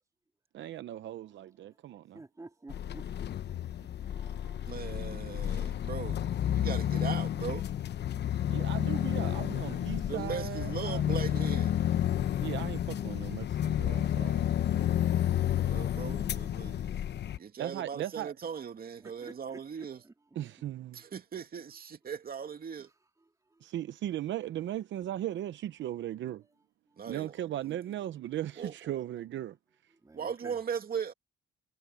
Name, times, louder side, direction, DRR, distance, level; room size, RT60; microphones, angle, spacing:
voice 1, 0.5-2.2 8.5-11.3 12.4-14.5 17.6-18.3 20.4-21.0 23.6-26.4 27.1-29.6, right 12 dB, 70° right, 0.8 m, -37 dB
voice 2, 2.1-4.6 5.4-5.9 17.3-17.4 19.0-20.1 23.6-23.7 30.0-30.6, right 2 dB, 15° right, 2.6 m, -52 dB
sound 1, 2.7-17.4, left 10 dB, 60° left, 1.0 m, -31 dB
voice 3, 4.7-7.6 9.6-9.7 10.1-11.7 15.5-16.9 17.4-20.0 20.9-22.9 27.0-27.3 27.6-27.8 28.6-29.1 30.1-31.1, right 7 dB, 50° right, 2.5 m, -39 dB
cardioid pair, 90°, 20 cm